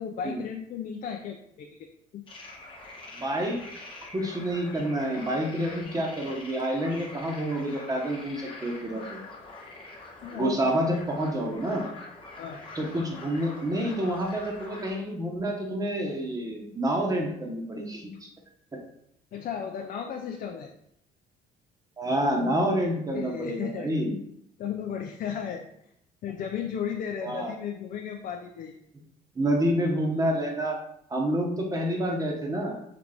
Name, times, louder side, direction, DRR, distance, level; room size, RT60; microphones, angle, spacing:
voice 1, 0.0-1.9 2.1-2.2 10.2-10.8 12.4-12.7 19.3-20.7 23.1-23.9 24.6-25.6 26.2-28.7, left 8 dB, 55° left, 3 dB, 0.4 m, -35 dB
sound 1, 2.3-14.9, left 2 dB, 30° left, 1.1 m, -44 dB
voice 2, 3.1-3.8 4.1-9.2 10.3-11.8 12.7-18.3 22.0-24.1 27.2-27.5 29.3-30.8 31.1-32.7, right 1 dB, 20° right, 0 dB, 1.0 m, -28 dB
3.8 x 3.4 x 3.4 m, 0.75 s
cardioid pair, 110°, 17 cm